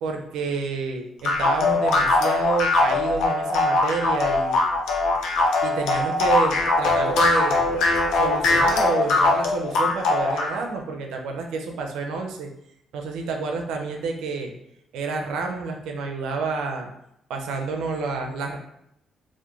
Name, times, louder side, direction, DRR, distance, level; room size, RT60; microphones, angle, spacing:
voice 1, 0.0-4.6 5.6-7.6 8.1-12.5 12.9-14.6 14.9-16.9 17.3-18.6, right 4 dB, 90° right, 3 dB, 0.4 m, -29 dB
sound 1, 1.2-10.6, left 2 dB, 85° left, 0.5 m, -21 dB
2.3 x 2.1 x 2.9 m, 0.77 s
cardioid pair, 90°, 0 cm